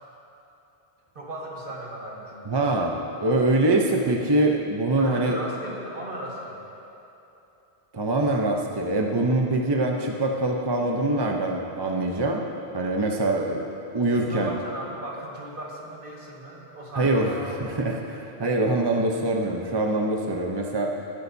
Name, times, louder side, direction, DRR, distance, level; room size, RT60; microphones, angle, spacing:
voice 1, 1.1-2.5 5.0-6.6 14.1-17.7, right 1 dB, 55° right, -3 dB, 2.0 m, -37 dB
voice 2, 2.5-5.4 7.9-12.4 12.7-13.6 13.9-14.5 16.9-17.3 17.6-21.1, right 2 dB, 30° right, 1 dB, 0.6 m, -24 dB
20.0 x 11.0 x 2.7 m, 2.9 s
omnidirectional pair, 1.1 m